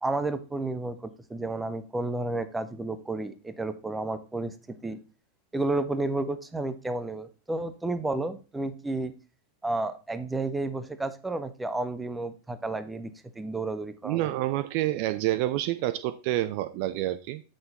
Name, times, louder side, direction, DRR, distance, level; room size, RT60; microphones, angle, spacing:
voice 1, 0.0-5.0 5.5-9.1 9.6-14.3, right 2 dB, 10° right, 11 dB, 0.8 m, -31 dB
voice 2, 14.0-17.4, right 15 dB, 45° right, 13 dB, 0.4 m, -28 dB
7.8 x 5.8 x 4.1 m, 0.33 s
figure-of-eight pair, 90°, 0 cm